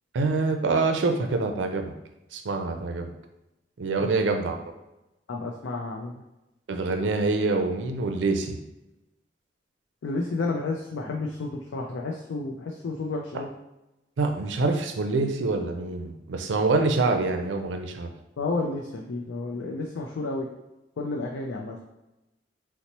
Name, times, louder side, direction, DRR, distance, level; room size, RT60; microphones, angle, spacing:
voice 1, 0.1-1.8 2.3-3.1 3.8-4.7 6.7-8.6 14.2-18.1, right 3 dB, 80° right, 5 dB, 0.4 m, -25 dB
voice 2, 5.3-6.2 10.0-13.5 18.4-20.5 21.0-21.8, left 3 dB, 90° left, 0 dB, 0.4 m, -31 dB
2.9 x 2.1 x 4.0 m, 0.96 s
head